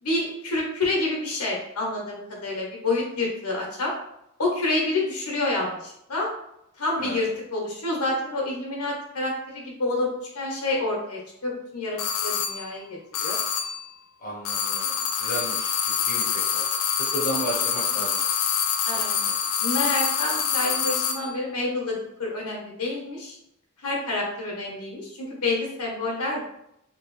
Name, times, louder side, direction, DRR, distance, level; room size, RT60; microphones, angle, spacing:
voice 1, 0.0-3.9 4.4-6.3 6.8-13.4 18.8-19.1 19.6-23.4 23.8-26.4, left 2 dB, 90° left, -2 dB, 1.1 m, -28 dB
sound 1, 12.0-12.7 13.1-13.9 14.4-21.3, left 7 dB, 70° left, 0.4 m, -26 dB
voice 2, 14.2-16.6 17.1-18.2 18.9-19.3, right 1 dB, 35° left, -4 dB, 0.9 m, -34 dB
3.0 x 3.0 x 3.1 m, 0.79 s
head